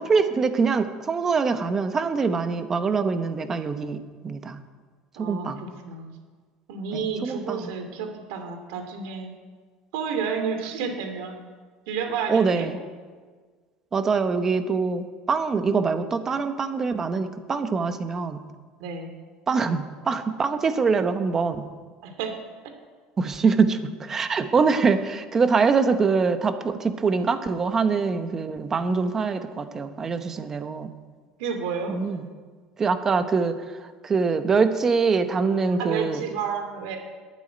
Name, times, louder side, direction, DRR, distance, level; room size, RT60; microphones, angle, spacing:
voice 1, 0.0-4.6 5.2-5.6 6.9-7.7 12.3-12.8 13.9-18.4 19.5-21.7 23.2-30.9 31.9-32.3 32.8-33.5 34.0-36.2, right 5 dB, 20° right, 9 dB, 0.9 m, -24 dB
voice 2, 5.2-6.1 6.7-9.3 9.9-11.4 11.9-12.8 18.8-19.1 22.0-22.3 31.4-32.0 35.7-37.0, right 6 dB, 75° right, 6 dB, 2.7 m, -31 dB
12.0 x 10.5 x 9.6 m, 1.5 s
cardioid pair, 160°, 2 cm